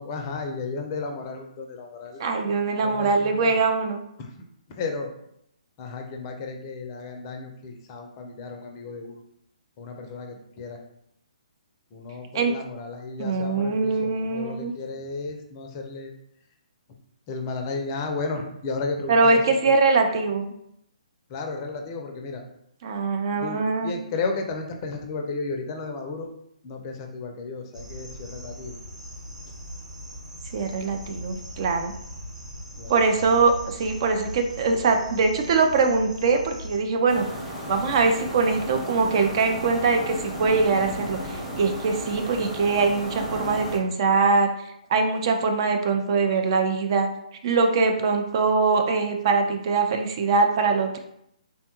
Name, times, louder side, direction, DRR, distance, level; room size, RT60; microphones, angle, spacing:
voice 1, 0.0-2.3 2.8-3.5 4.2-4.3 4.7-5.1 5.8-9.2 9.8-10.8 11.9-16.1 17.3-19.7 21.3-22.4 23.4-26.3 26.6-28.8 32.8-33.1, left 3 dB, 30° left, 3 dB, 0.4 m, -33 dB
voice 2, 2.2-4.0 12.3-12.5 13.2-14.7 19.1-20.5 22.8-24.0 30.5-31.9 32.9-37.3 37.7-44.5 44.9-47.1 47.4-51.0, right 4 dB, 40° right, 5 dB, 0.3 m, -22 dB
sound 1, 27.7-36.8, equal, 70° right, 1.0 m, -40 dB
sound 2, 37.1-43.8, equal, 10° right, 0.8 m, -34 dB
3.4 x 2.2 x 2.8 m, 0.75 s
figure-of-eight pair, 135°, 4 cm